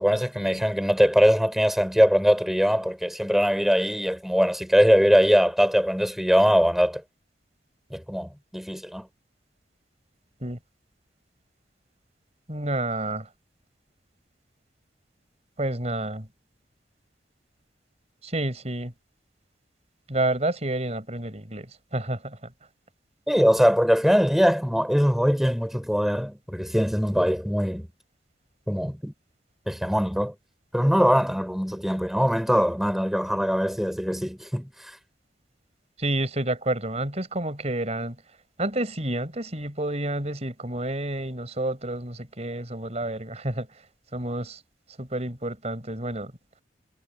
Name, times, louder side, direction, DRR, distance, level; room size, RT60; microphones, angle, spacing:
voice 1, 0.0-7.0 7.9-9.1 23.3-27.9 28.7-29.1 29.7-30.3 30.7-34.7, equal, ahead, 3.7 m, -22 dB
voice 2, 12.5-13.3 15.6-16.3 18.2-18.9 20.1-21.7 21.9-22.4 36.0-38.2 38.6-43.7 44.1-44.6 45.0-46.3, right 1 dB, 35° right, 5.2 m, -29 dB
head